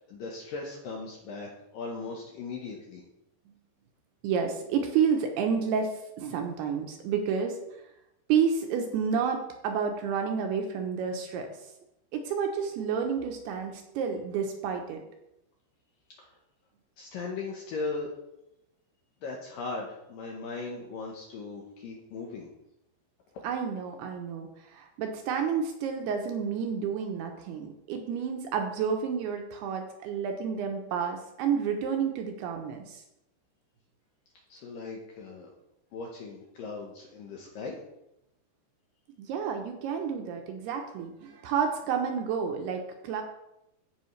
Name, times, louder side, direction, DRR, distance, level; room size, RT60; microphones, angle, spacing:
voice 1, 0.0-3.0 16.2-16.3 17.0-18.1 19.2-22.5 34.5-35.5 35.9-37.8, left 3 dB, 75° left, -1 dB, 2.1 m, -38 dB
voice 2, 4.2-7.6 8.3-11.5 12.1-15.0 23.4-33.0 39.2-43.2, right 6 dB, 75° right, 4 dB, 2.6 m, -30 dB
15.0 x 5.5 x 3.2 m, 0.87 s
omnidirectional pair, 5.1 m